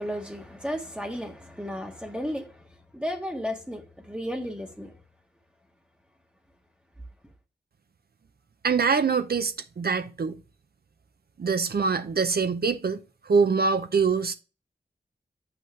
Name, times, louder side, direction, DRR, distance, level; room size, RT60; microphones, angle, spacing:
voice 1, 0.0-2.5 2.9-4.9, equal, 5° right, 1.1 m, -33 dB
voice 2, 8.6-10.3 11.4-13.0 13.3-14.3, right 5 dB, 65° right, 0.7 m, -24 dB
7.6 x 5.9 x 3.3 m
wide cardioid pair, 60°, 17 cm